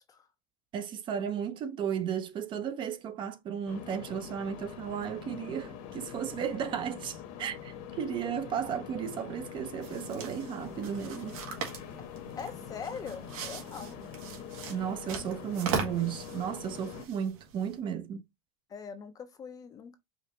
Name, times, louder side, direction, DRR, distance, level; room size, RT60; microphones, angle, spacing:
voice 1, 0.7-11.4 14.7-18.2, right 8 dB, 30° right, 0.6 m, -34 dB
sound 1, 3.7-17.0, left 8 dB, 55° left, 1.1 m, -44 dB
sound 2, 9.8-17.8, right 5 dB, 80° right, 1.7 m, -40 dB
voice 2, 12.4-13.9 18.7-20.0, left 6 dB, 20° left, 0.6 m, -42 dB
5.1 x 2.6 x 2.9 m
supercardioid pair, 155°, 17 cm